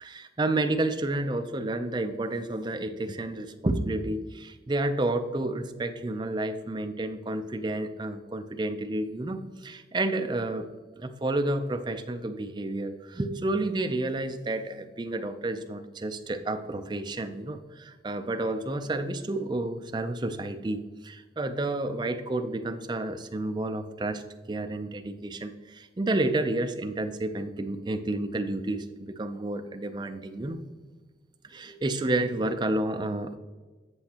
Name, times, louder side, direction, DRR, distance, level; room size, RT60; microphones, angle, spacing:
voice 1, 0.0-10.7 11.0-24.2 24.5-30.6 31.4-33.4, right 2 dB, 25° right, 7 dB, 0.4 m, -30 dB
7.9 x 7.4 x 2.9 m, 1.3 s
head